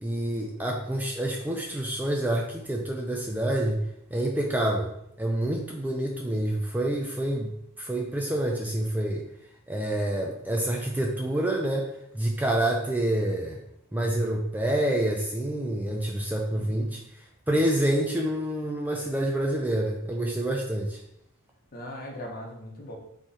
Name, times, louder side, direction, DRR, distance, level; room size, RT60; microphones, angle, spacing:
voice 1, 0.0-3.8 4.1-4.9 5.2-7.5 7.8-9.3 9.7-11.9 12.1-13.6 13.9-17.0 17.5-21.0, right 1 dB, 10° right, 0 dB, 0.4 m, -27 dB
voice 2, 16.5-17.0 21.7-23.0, left 1 dB, 40° left, 0 dB, 0.9 m, -40 dB
3.8 x 3.1 x 4.1 m, 0.77 s
head